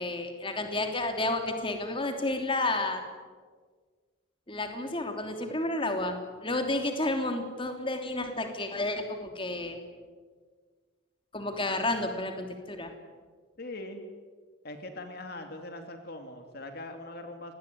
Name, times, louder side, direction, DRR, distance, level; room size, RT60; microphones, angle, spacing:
voice 1, 0.0-3.0 4.5-9.8 11.3-12.9, left 2 dB, 25° left, 5 dB, 3.0 m, -31 dB
voice 2, 13.6-14.0 14.6-17.5, left 2 dB, 55° left, 5 dB, 2.7 m, -41 dB
27.5 x 20.5 x 9.6 m, 1.5 s
head